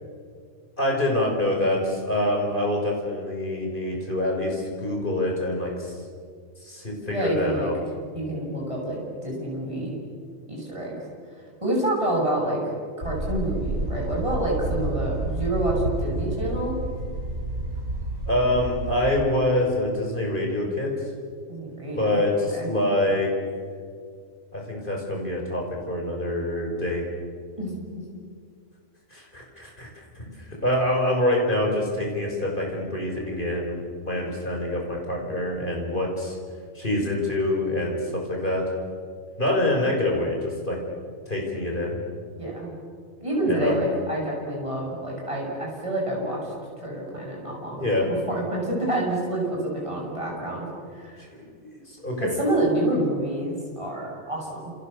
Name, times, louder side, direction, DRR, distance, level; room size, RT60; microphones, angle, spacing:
voice 1, 0.8-6.0 6.6-7.7 18.3-20.9 22.0-23.3 24.5-27.0 29.1-29.9 30.2-36.4 36.7-38.6 39.4-40.8 41.3-42.0 43.5-43.8 47.8-48.1 51.3-52.4, left 1 dB, 40° left, -1 dB, 6.2 m, -26 dB
voice 2, 7.1-7.7 8.1-10.0 10.5-11.0 11.3-12.6 13.0-16.8 21.5-22.2 22.5-22.7 27.6-27.9 42.4-42.7 43.2-51.3 52.2-54.7, right 1 dB, 25° right, -3 dB, 7.8 m, -28 dB
sound 1, 13.0-19.2, right 2 dB, 50° right, 4.4 m, -30 dB
29.5 x 29.0 x 6.9 m, 2.1 s
omnidirectional pair, 1.4 m